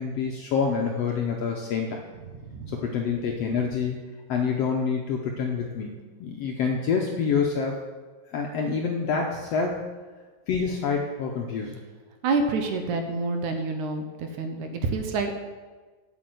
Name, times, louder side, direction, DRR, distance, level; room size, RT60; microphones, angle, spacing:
voice 1, 0.0-2.0 2.7-4.0 4.3-7.9 8.3-9.9 10.5-11.8, left 5 dB, 70° left, 1 dB, 1.6 m, -27 dB
voice 2, 2.4-2.8 12.2-15.3, right 3 dB, 70° right, 5 dB, 2.3 m, -28 dB
8.4 x 8.3 x 7.8 m, 1.3 s
omnidirectional pair, 3.8 m